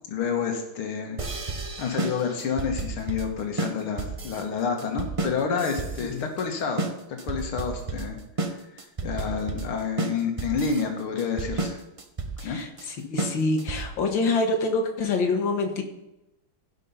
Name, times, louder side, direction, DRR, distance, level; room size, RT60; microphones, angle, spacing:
voice 1, 0.1-1.4 1.8-8.2 8.5-11.8 12.4-12.6, left 6 dB, 80° left, 3 dB, 2.2 m, -29 dB
sound 1, 1.2-14.1, right 3 dB, 65° right, 0.3 m, -32 dB
voice 2, 12.4-15.8, left 3 dB, 65° left, 4 dB, 2.2 m, -26 dB
16.0 x 5.4 x 5.6 m, 0.91 s
omnidirectional pair, 2.3 m